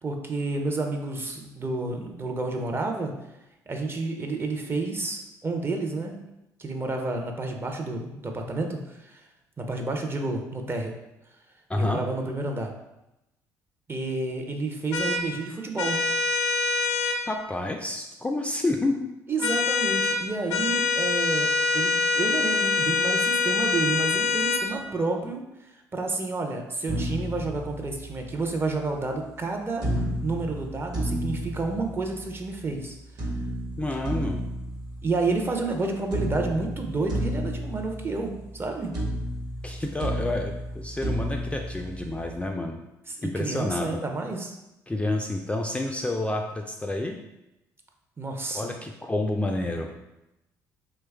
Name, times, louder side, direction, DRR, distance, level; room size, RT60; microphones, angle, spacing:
voice 1, 0.0-3.1 3.7-6.2 6.6-9.2 9.6-10.9 11.8-12.7 13.9-16.0 19.3-25.4 25.9-29.9 30.2-33.0 35.0-38.9 43.1-44.6 48.2-48.7, right 3 dB, 25° right, 3 dB, 0.6 m, -30 dB
sound 1, 14.9-15.2 15.8-17.2 19.4-20.2 20.5-24.6, left 4 dB, 90° left, 0.4 m, -24 dB
voice 2, 17.3-19.1 33.8-34.4 39.6-42.8 43.2-44.0 44.9-47.2 48.5-49.9, left 2 dB, 15° left, 2 dB, 0.3 m, -29 dB
sound 2, 26.9-28.4 29.8-32.4 33.2-35.8 36.1-38.7 38.9-42.4, equal, 50° right, 1.1 m, -32 dB
3.0 x 2.3 x 3.4 m, 0.91 s
hypercardioid pair, 60°, 8 cm